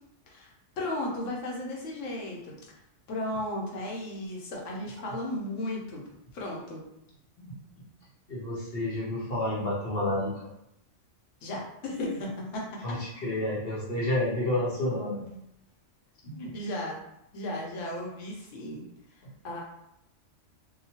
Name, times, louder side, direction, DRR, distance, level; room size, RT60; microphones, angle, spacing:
voice 1, 0.3-2.6 3.1-6.0 6.3-6.9 11.4-13.0 16.3-17.0 17.3-18.8 19.4-19.6, left 1 dB, 80° left, -2 dB, 1.1 m, -35 dB
voice 2, 8.3-10.5 12.8-15.3 16.2-16.4 19.2-19.3, left 1 dB, 55° left, -6 dB, 0.9 m, -30 dB
2.9 x 2.2 x 2.7 m, 0.81 s
omnidirectional pair, 1.3 m